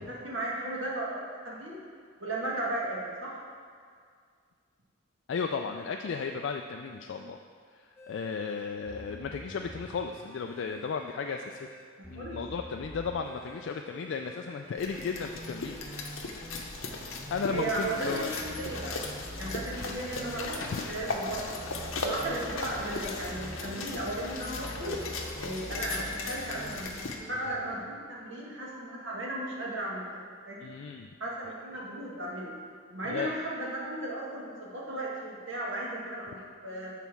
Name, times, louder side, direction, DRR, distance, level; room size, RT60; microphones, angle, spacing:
voice 1, 0.0-1.8 2.2-3.4 12.1-12.4 17.5-19.0 19.3-21.5 22.0-24.9 25.4-30.2 30.5-30.7 31.2-32.5 32.9-36.9, right 1 dB, 65° right, -4 dB, 1.7 m, -35 dB
voice 2, 5.3-7.4 7.8-11.7 12.1-16.1 17.3-18.3 20.7-20.9 30.6-31.1 33.1-33.4, left 5 dB, 60° left, 4 dB, 0.3 m, -35 dB
sound 1, 8.0-27.8, equal, 10° left, 0.7 m, -46 dB
sound 2, 14.8-27.2, left 3 dB, 80° left, 0.8 m, -37 dB
7.4 x 4.1 x 5.9 m, 2.1 s
head